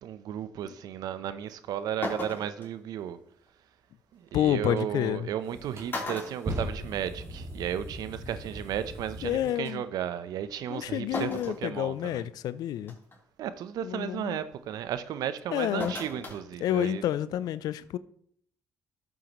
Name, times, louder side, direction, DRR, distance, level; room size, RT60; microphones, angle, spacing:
voice 1, 0.0-3.2 4.1-12.3 13.4-17.0, right 10 dB, 75° right, 0.7 m, -34 dB
sound 1, 1.5-1.6 2.0-2.7 4.3-4.4 5.4-5.5 5.9-7.3 7.6-7.7 8.9-9.0 11.1-11.6 12.2-12.3 12.9-13.2 15.8-16.4 16.7-16.8, left 2 dB, 35° left, 3.6 m, -36 dB
voice 2, 4.3-5.3 9.2-9.8 10.7-13.0 13.8-14.4 15.5-15.9 16.6-18.0, left 12 dB, 75° left, 0.5 m, -29 dB
sound 2, 4.7-4.9 5.5-9.8, right 1 dB, 40° right, 2.8 m, -39 dB
13.0 x 7.5 x 3.1 m
supercardioid pair, 55°, 7 cm